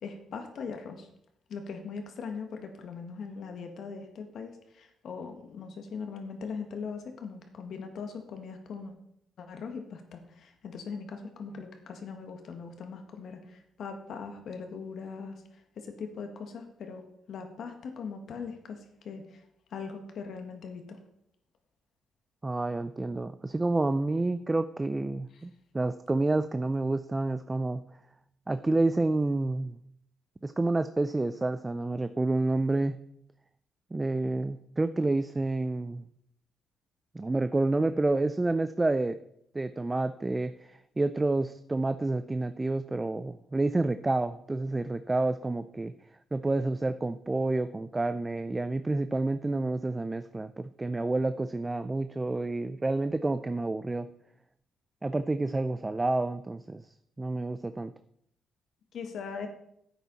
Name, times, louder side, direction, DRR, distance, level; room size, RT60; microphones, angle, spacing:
voice 1, 0.0-1.1 1.5-8.9 9.4-15.4 15.7-19.4 19.7-21.0 25.3-25.4 58.9-59.5, left 5 dB, 65° left, 5 dB, 1.8 m, -40 dB
voice 2, 22.4-27.8 28.5-29.8 30.4-32.9 33.9-36.0 37.1-39.2 39.5-45.9 46.3-54.1 55.0-56.8 57.2-57.9, right 2 dB, 20° right, 11 dB, 0.4 m, -29 dB
10.5 x 8.4 x 4.1 m, 0.74 s
cardioid pair, 90°, 0 cm